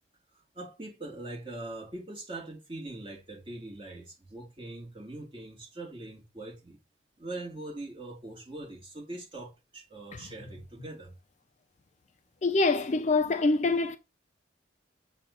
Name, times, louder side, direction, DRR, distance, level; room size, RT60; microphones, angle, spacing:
voice 1, 0.3-6.8 7.2-11.2, right 2 dB, 25° right, 1.9 m, -42 dB
voice 2, 12.4-14.0, left 3 dB, 35° left, 0.4 m, -25 dB
7.2 x 2.6 x 5.5 m
head